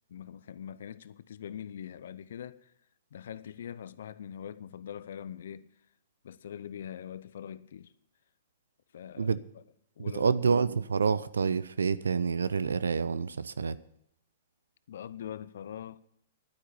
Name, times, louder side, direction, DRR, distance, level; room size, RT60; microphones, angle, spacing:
voice 1, 0.1-2.7 3.1-5.7 6.2-7.9 8.9-9.6 10.0-10.6 14.9-16.0, left 9 dB, 60° left, 0.6 m, -43 dB
voice 2, 10.1-13.8, right 5 dB, 75° right, 0.5 m, -28 dB
11.0 x 9.7 x 7.1 m
figure-of-eight pair, 110°, 0 cm